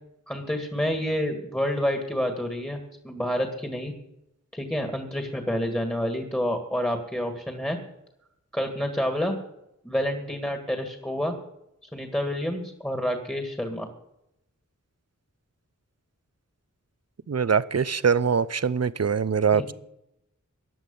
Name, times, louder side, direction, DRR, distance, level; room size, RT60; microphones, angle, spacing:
voice 1, 0.3-3.9 4.5-7.8 8.5-9.4 9.8-11.3 11.9-13.9 19.5-19.6, equal, 5° left, 4 dB, 2.0 m, -28 dB
voice 2, 17.3-19.7, right 6 dB, 55° right, 18 dB, 0.6 m, -23 dB
16.0 x 10.0 x 5.4 m, 0.83 s
wide cardioid pair, 45°, 31 cm